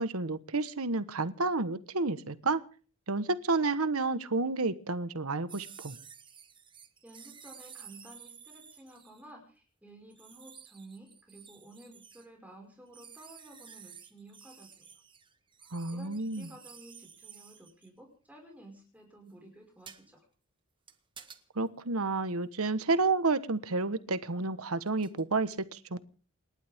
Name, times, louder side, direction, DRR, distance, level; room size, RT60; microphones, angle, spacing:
voice 1, 0.0-2.6 3.1-6.0 15.7-16.5 21.5-26.0, right 3 dB, 80° right, 13 dB, 1.3 m, -30 dB
sound 1, 5.5-9.2 10.1-12.3 12.9-17.9 19.9-20.0 20.9-21.4 23.0-23.1 24.9-25.2, right 7 dB, 20° right, 1.6 m, -52 dB
voice 2, 7.0-14.9 15.9-20.2, right 1 dB, 5° right, 2 dB, 5.4 m, -53 dB
28.5 x 12.0 x 3.6 m, 0.39 s
head